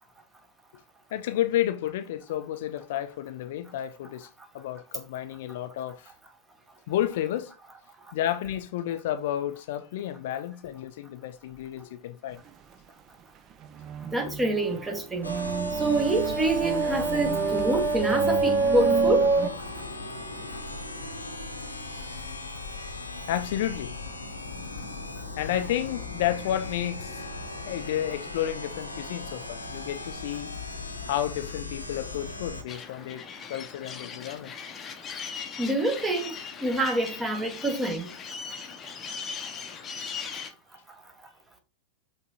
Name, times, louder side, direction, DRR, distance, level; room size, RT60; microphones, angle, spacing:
voice 1, 1.1-4.3 4.5-6.1 6.9-7.5 8.1-12.4 14.3-14.4 23.3-24.0 24.8-24.9 25.3-27.2 27.7-30.5 31.0-34.5, left 12 dB, 55° left, 0.3 m, -31 dB
sound 1, 13.6-19.5, right 4 dB, 30° right, 0.4 m, -26 dB
voice 2, 14.0-15.4 15.7-19.3 35.6-36.4 36.6-38.1, right 2 dB, 15° right, 1.0 m, -27 dB
sound 2, 15.2-32.6, left 3 dB, 80° left, 0.7 m, -38 dB
sound 3, 32.7-40.5, left 6 dB, 25° left, 0.7 m, -39 dB
5.8 x 3.1 x 2.8 m
figure-of-eight pair, 90°, 0 cm